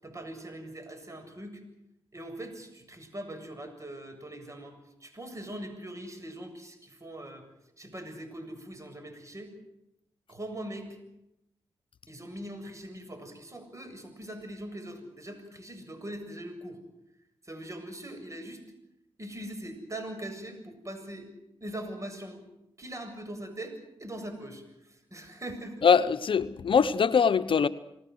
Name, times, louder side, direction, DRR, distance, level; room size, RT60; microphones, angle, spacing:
voice 1, 0.0-1.6 2.1-4.8 5.0-7.5 7.8-9.5 10.3-11.0 12.1-16.8 17.4-18.6 19.2-21.3 21.6-22.4 22.8-25.9, right 1 dB, 30° right, 7.5 m, -41 dB
voice 2, 25.8-27.7, left 6 dB, 60° left, 0.9 m, -22 dB
29.0 x 19.0 x 7.9 m
cardioid pair, 60°, 10 cm